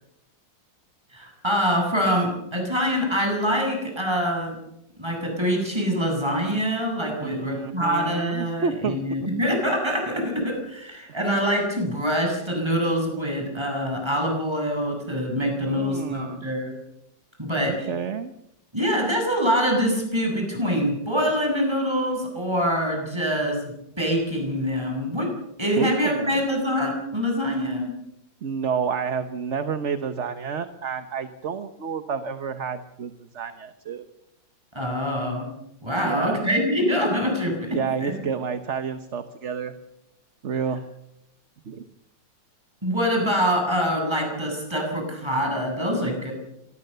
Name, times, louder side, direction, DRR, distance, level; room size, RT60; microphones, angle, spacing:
voice 1, 1.1-4.6 5.0-16.7 17.4-17.9 18.7-25.3 25.6-27.9 34.7-35.5 35.8-38.1 42.8-46.3, equal, 15° right, 1 dB, 7.9 m, -25 dB
voice 2, 7.2-9.3 15.6-16.5 17.6-18.3 25.8-26.4 28.4-34.1 36.0-36.4 37.7-39.8 40.4-40.9 41.7-41.8, right 6 dB, 45° right, 9 dB, 1.2 m, -30 dB
26.5 x 21.0 x 6.9 m, 0.83 s
omnidirectional pair, 2.1 m